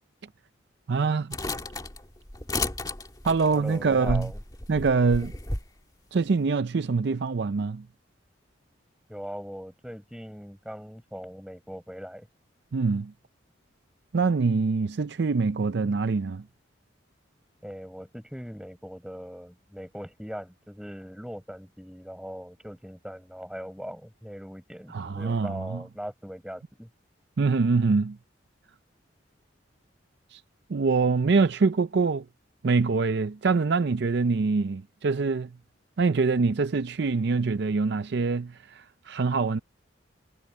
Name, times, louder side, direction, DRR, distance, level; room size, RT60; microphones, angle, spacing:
voice 1, 0.9-1.4 3.2-4.3 4.7-5.3 6.1-7.8 12.7-13.1 14.1-16.4 24.9-25.8 27.4-28.2 30.3-30.4 30.7-32.2 32.6-35.5 36.0-39.6, right 4 dB, 60° right, 0.5 m, -24 dB
sound 1, 1.3-5.7, left 2 dB, 20° left, 2.1 m, -33 dB
voice 2, 3.5-4.4 9.1-12.3 17.6-26.9, equal, 5° right, 7.9 m, -40 dB
head